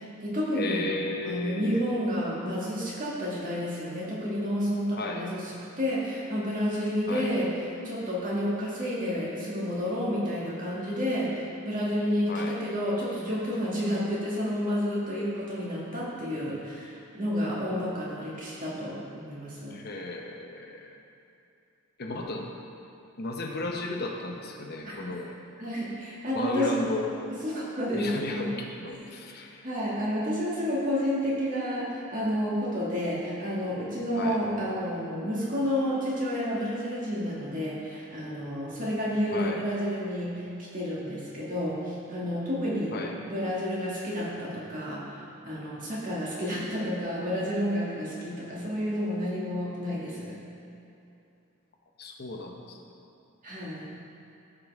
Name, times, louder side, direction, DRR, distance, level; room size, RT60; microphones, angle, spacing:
voice 1, 0.0-0.9 1.2-5.5 5.8-7.5 7.8-19.8 25.0-25.1 25.6-26.8 27.4-28.5 29.6-40.5 40.7-42.9 43.3-45.2 45.5-50.3 53.4-53.9, equal, 40° right, -7 dB, 2.1 m, -30 dB
voice 2, 0.5-1.9 4.9-5.3 7.1-7.3 12.3-12.6 19.7-21.0 22.0-22.5 23.2-25.4 26.3-27.2 27.9-29.6 34.1-34.4 39.3-39.6 42.9-43.1 52.0-52.8, left 2 dB, 50° left, 1 dB, 0.9 m, -34 dB
13.5 x 5.4 x 3.6 m, 2.8 s
head